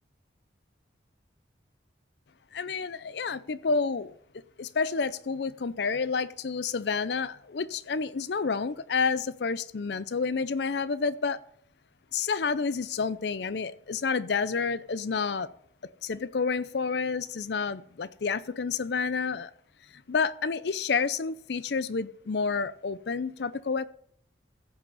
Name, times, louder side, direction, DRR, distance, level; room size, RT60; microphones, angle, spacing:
voice 1, 2.5-4.1 4.6-11.4 12.1-15.5 16.0-19.5 20.1-23.9, left 5 dB, 65° left, 0.5 m, -29 dB
15.0 x 5.9 x 5.5 m
head